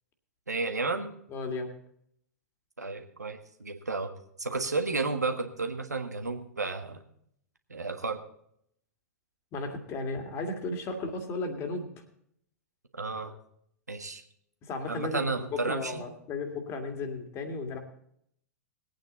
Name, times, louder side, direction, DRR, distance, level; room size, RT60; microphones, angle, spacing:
voice 1, 0.5-1.1 2.8-4.1 4.4-7.0 7.7-8.2 13.0-13.3 13.9-14.2 14.9-16.0, right 3 dB, 80° right, 6 dB, 1.5 m, -32 dB
voice 2, 1.3-1.7 9.5-11.9 14.6-17.8, left 3 dB, 30° left, 5 dB, 2.3 m, -34 dB
19.5 x 9.0 x 4.1 m, 0.70 s
figure-of-eight pair, 100°, 9 cm